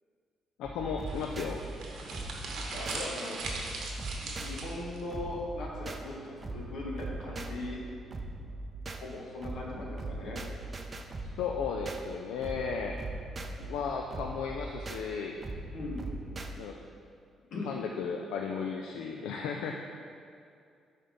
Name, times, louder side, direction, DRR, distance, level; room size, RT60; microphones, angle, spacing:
voice 1, 0.6-1.6 11.4-13.0 13.6-15.4 16.5-16.7 17.6-19.8, left 6 dB, 90° left, 2 dB, 0.3 m, -35 dB
sound 1, 0.6-16.5, right 2 dB, 35° right, 0.4 m, -41 dB
sound 2, 1.0-5.0, right 3 dB, 75° right, 0.9 m, -39 dB
voice 2, 2.7-3.4 4.2-7.8 8.9-10.4 15.7-16.0 17.5-17.7, left 2 dB, 70° left, -2 dB, 1.2 m, -39 dB
5.6 x 3.5 x 5.2 m, 2.4 s
cardioid pair, 90°, 0 cm